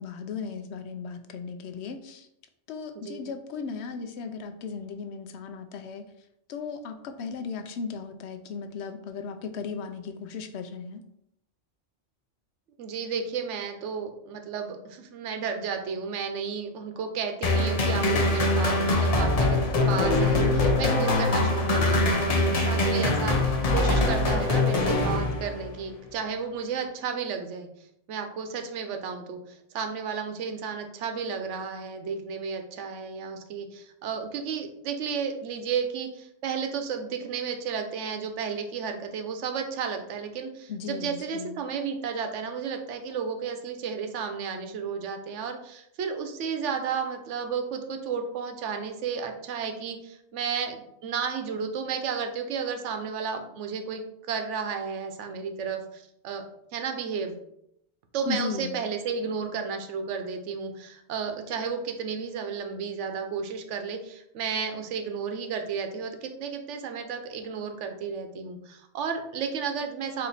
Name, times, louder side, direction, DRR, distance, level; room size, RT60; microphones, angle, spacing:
voice 1, 0.0-2.3 2.7-6.1 6.5-11.0 40.7-41.6 58.3-58.8, left 5 dB, 70° left, 7 dB, 0.8 m, -36 dB
voice 2, 3.0-3.3 12.8-19.6 19.9-27.7 28.1-54.0 54.3-56.4 56.7-57.4 58.1-70.3, right 6 dB, 80° right, 6 dB, 1.0 m, -33 dB
sound 1, 17.4-25.7, left 2 dB, 40° left, 0.6 m, -23 dB
4.3 x 2.8 x 4.0 m, 0.77 s
omnidirectional pair, 1.2 m